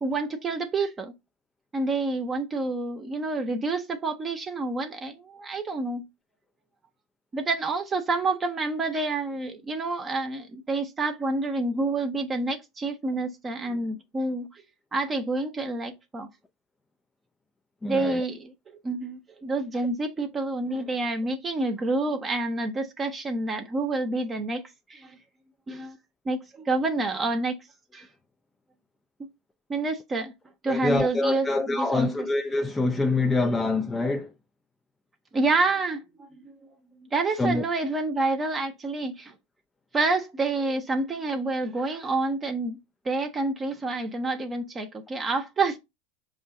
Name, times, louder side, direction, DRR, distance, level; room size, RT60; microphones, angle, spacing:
voice 1, 0.0-1.1 1.7-6.1 7.3-14.5 14.9-16.3 17.9-18.5 18.8-25.2 25.7-26.0 26.3-27.6 27.9-28.0 29.2-29.3 29.7-30.3 30.6-32.3 35.3-36.0 36.4-36.5 37.0-39.3 39.9-42.8 43.0-45.8, right 3 dB, 25° right, 0.7 m, -28 dB
voice 2, 17.8-18.2 30.7-34.3 37.4-37.6, left 2 dB, 15° left, 0.3 m, -25 dB
4.5 x 2.5 x 3.6 m
hypercardioid pair, 100°, 0 cm